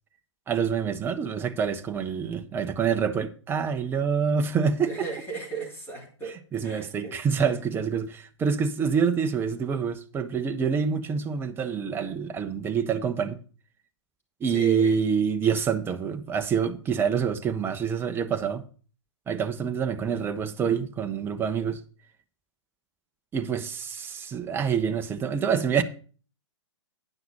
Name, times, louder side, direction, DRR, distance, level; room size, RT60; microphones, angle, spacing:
voice 1, 0.5-5.1 6.5-13.4 14.4-18.6 19.3-21.8 23.3-25.8, right 6 dB, 15° right, 0.7 m, -26 dB
voice 2, 4.9-6.4 6.6-7.2 7.4-7.5 14.5-15.0, right 4 dB, 15° left, 3.2 m, -35 dB
9.9 x 5.9 x 5.4 m
figure-of-eight pair, 115°, 16 cm